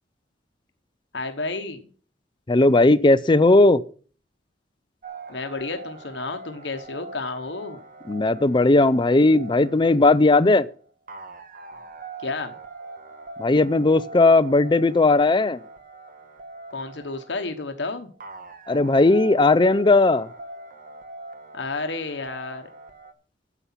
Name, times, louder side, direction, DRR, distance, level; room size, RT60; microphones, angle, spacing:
voice 1, 1.1-1.9 5.3-7.8 12.2-12.5 16.7-18.1 21.5-22.7, left 3 dB, 75° left, 1.2 m, -31 dB
voice 2, 2.5-3.8 8.1-10.7 13.4-15.6 18.7-20.3, left 2 dB, 25° left, 0.5 m, -17 dB
sound 1, 5.0-23.1, right 3 dB, 50° right, 1.3 m, -42 dB
9.9 x 8.3 x 5.7 m
head